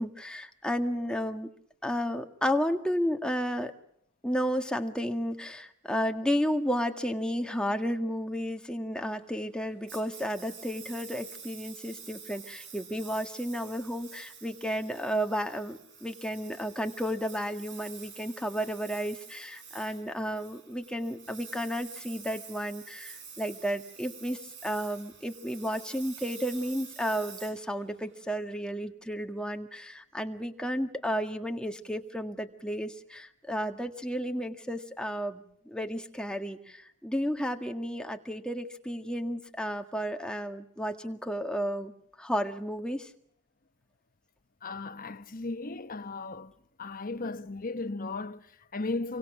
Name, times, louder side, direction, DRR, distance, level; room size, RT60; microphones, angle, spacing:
voice 1, 0.0-1.5 1.8-3.7 4.2-41.9 42.2-43.1, equal, 5° left, 1.8 m, -32 dB
Engine, 9.9-28.3, right 6 dB, 55° right, 6.0 m, -48 dB
voice 2, 44.6-46.5 46.8-49.2, left 3 dB, 40° left, 1.1 m, -36 dB
29.0 x 25.0 x 6.2 m
head